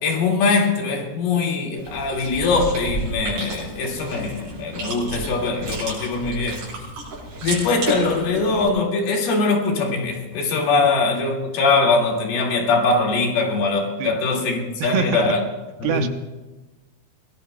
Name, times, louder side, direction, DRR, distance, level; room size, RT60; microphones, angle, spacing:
voice 1, 0.0-6.6 7.4-15.4 15.8-16.1, left 3 dB, 85° left, 0 dB, 4.1 m, -22 dB
Chewing mastication, 1.8-8.7, right 2 dB, 60° right, 7.7 m, -31 dB
voice 2, 14.8-15.4 15.8-16.1, right 9 dB, 80° right, 7 dB, 2.6 m, -25 dB
24.5 x 20.0 x 2.2 m, 1.1 s
omnidirectional pair, 4.4 m